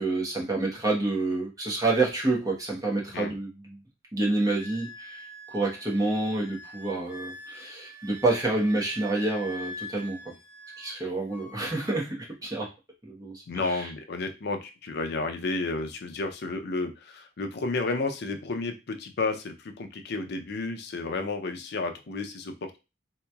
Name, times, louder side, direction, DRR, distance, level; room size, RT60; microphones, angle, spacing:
voice 1, 0.0-3.8 4.1-5.2 5.5-10.3 10.8-12.7 13.0-13.4 13.7-13.8, right 2 dB, 20° right, -2 dB, 0.9 m, -28 dB
Wind instrument woodwind instrument, 4.6-11.0 11.3-11.9, equal, 45° right, 2.0 m, -44 dB
voice 2, 13.5-22.8, left 3 dB, 55° left, 6 dB, 0.5 m, -32 dB
3.7 x 2.9 x 2.2 m, 0.28 s
head